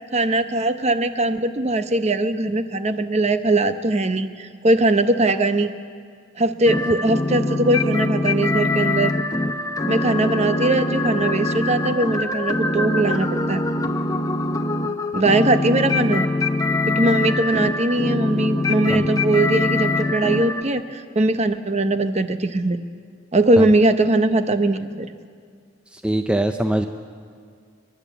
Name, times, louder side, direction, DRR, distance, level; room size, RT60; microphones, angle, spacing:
voice 1, 0.1-5.7 6.4-9.1 9.9-13.6 15.1-16.3 16.9-22.8 23.3-25.1, right 2 dB, 30° right, 10 dB, 0.8 m, -20 dB
sound 1, 6.7-20.6, left 2 dB, 15° left, 0.8 m, -23 dB
voice 2, 26.0-26.9, right 1 dB, 5° right, 6 dB, 0.5 m, -21 dB
28.5 x 11.0 x 8.4 m, 2.1 s
head